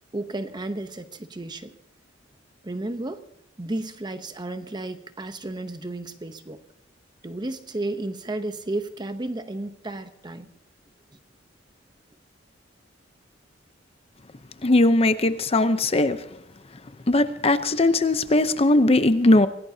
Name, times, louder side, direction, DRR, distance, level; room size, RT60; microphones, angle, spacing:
voice 1, 0.1-1.7 2.6-3.2 3.6-6.6 7.2-10.5, right 2 dB, 25° right, 0.8 m, -33 dB
voice 2, 14.6-16.2 17.1-19.5, left 2 dB, 30° left, 0.7 m, -19 dB
26.0 x 16.5 x 2.8 m
head